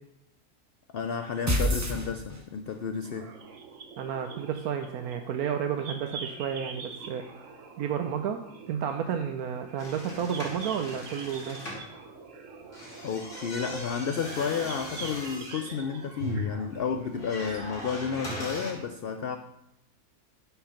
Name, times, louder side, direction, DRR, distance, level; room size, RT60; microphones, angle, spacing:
voice 1, 0.9-3.3 13.0-19.4, left 6 dB, 90° left, 8 dB, 0.5 m, -32 dB
sound 1, 1.5-2.7, equal, 15° right, 0.7 m, -27 dB
sound 2, 3.0-17.2, right 5 dB, 55° right, 1.3 m, -45 dB
voice 2, 4.0-7.3 7.8-8.4 8.7-11.6, right 8 dB, 75° right, 6 dB, 1.1 m, -31 dB
sound 3, 9.8-11.9 12.6-18.7, equal, 50° left, 2.7 m, -39 dB
10.0 x 5.7 x 5.8 m, 0.85 s
omnidirectional pair, 1.6 m